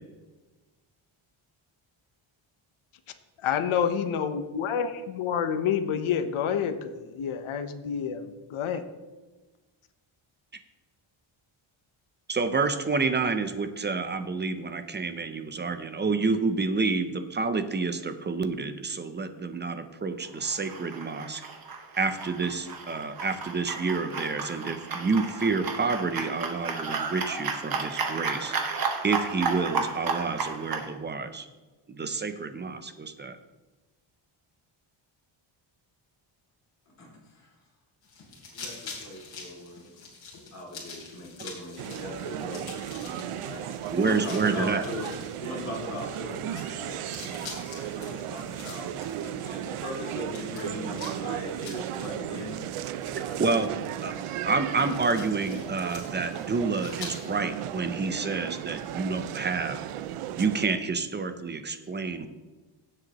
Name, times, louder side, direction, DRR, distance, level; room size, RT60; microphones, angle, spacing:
voice 1, 3.4-8.2 8.5-8.8, left 7 dB, 75° left, 9 dB, 0.9 m, -28 dB
voice 2, 12.3-21.4 22.0-28.8 29.0-31.4 31.9-33.4 43.9-44.8 53.4-53.7 54.0-59.8 60.4-62.3, right 4 dB, 20° right, 9 dB, 0.5 m, -29 dB
sound 1, 20.4-30.9, right 4 dB, 45° right, 1.2 m, -33 dB
sound 2, 38.0-57.4, left 4 dB, 50° left, 3.2 m, -46 dB
voice 3, 38.5-39.8 40.5-45.1 45.4-48.9 49.2-52.5, left 1 dB, 35° left, -3 dB, 2.8 m, -39 dB
sound 3, 41.8-60.7, right 11 dB, 85° right, 0.6 m, -35 dB
15.5 x 7.8 x 3.0 m, 1.2 s
wide cardioid pair, 165°, 49 cm